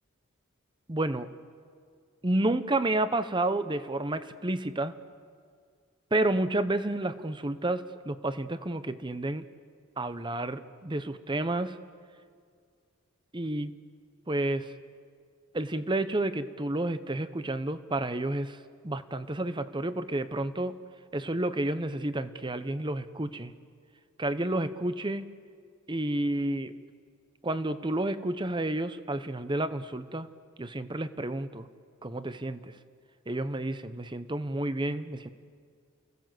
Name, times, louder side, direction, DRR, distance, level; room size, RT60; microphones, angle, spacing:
voice 1, 0.9-1.3 2.2-4.9 6.1-9.5 10.0-11.8 13.3-13.7 14.3-14.7 15.5-18.6 18.8-20.8 21.1-23.5 24.2-25.2 25.9-26.7 27.4-30.3 30.6-31.7 32.0-32.7 33.3-35.3, right 1 dB, 20° right, 12 dB, 0.7 m, -30 dB
29.5 x 16.5 x 7.7 m, 2.1 s
head